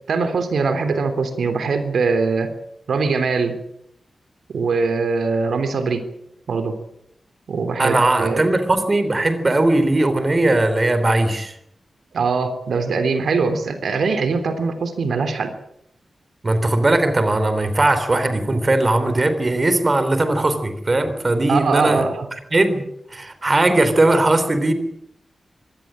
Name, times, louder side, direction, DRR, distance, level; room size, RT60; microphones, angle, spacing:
voice 1, 0.1-2.5 2.9-3.6 4.5-6.0 6.5-6.8 7.5-8.4 12.1-15.5 21.5-22.3, right 4 dB, 90° right, 8 dB, 3.2 m, -22 dB
voice 2, 7.8-11.5 16.4-22.0 22.5-22.8 23.1-24.7, right 2 dB, 25° right, 9 dB, 3.3 m, -18 dB
24.5 x 18.0 x 7.6 m, 0.76 s
wide cardioid pair, 165°, 0 cm